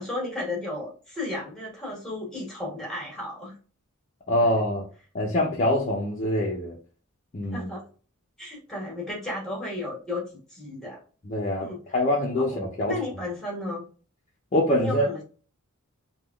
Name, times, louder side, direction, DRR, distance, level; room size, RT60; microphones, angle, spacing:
voice 1, 0.0-3.5 4.4-4.5 7.5-7.8 8.4-11.0 11.6-11.9 12.4-13.8 14.8-15.2, left 2 dB, 5° left, 1.3 m, -34 dB
voice 2, 4.3-4.8 5.1-6.7 7.3-7.7 11.3-11.7 11.9-12.9 14.5-15.1, left 1 dB, 35° left, 0.5 m, -24 dB
3.4 x 2.2 x 2.3 m
head